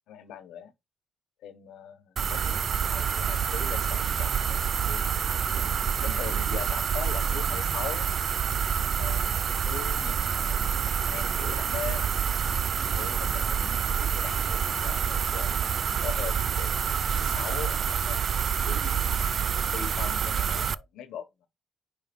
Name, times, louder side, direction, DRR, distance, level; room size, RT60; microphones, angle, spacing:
voice 1, 0.1-0.7 1.4-2.6 2.9-5.2 6.0-8.1 9.0-12.1 13.0-15.5 16.0-19.0 19.7-21.5, left 9 dB, 80° left, 1.1 m, -41 dB
sound 1, 2.2-20.7, right 7 dB, 50° right, 0.3 m, -27 dB
5.2 x 3.5 x 5.2 m
cardioid pair, 90°, 0 cm